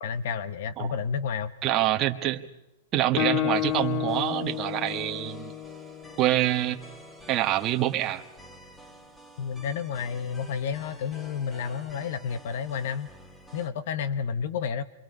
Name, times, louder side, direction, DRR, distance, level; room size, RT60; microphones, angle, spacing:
voice 1, 0.0-1.5 9.4-13.1 13.5-14.8, left 6 dB, 60° left, 13 dB, 1.0 m, -31 dB
voice 2, 1.6-2.4 2.9-5.5 6.2-6.8 7.3-8.2, right 14 dB, 30° right, 4 dB, 1.5 m, -26 dB
Guitar, 3.2-6.8, left 13 dB, 40° left, 1.1 m, -31 dB
sound 1, 3.5-13.7, right 1 dB, 5° left, 2.0 m, -50 dB
27.0 x 24.5 x 5.4 m, 0.92 s
hypercardioid pair, 140°, 0 cm